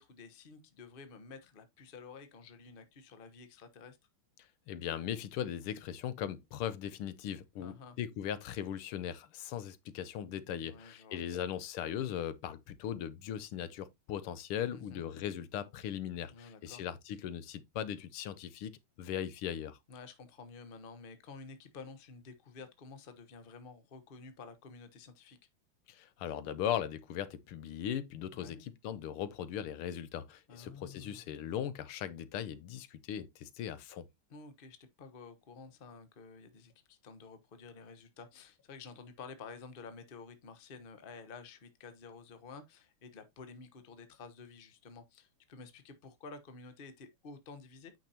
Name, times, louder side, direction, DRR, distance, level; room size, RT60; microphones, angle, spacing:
voice 1, 0.0-4.0 7.6-8.0 10.6-11.2 14.7-15.1 16.3-16.8 19.9-25.4 28.3-28.7 30.5-31.3 34.3-47.9, left 4 dB, 35° left, 0.9 m, -51 dB
voice 2, 4.7-19.8 25.9-34.1, left 10 dB, 85° left, 1.7 m, -39 dB
8.9 x 5.8 x 2.8 m
omnidirectional pair, 2.4 m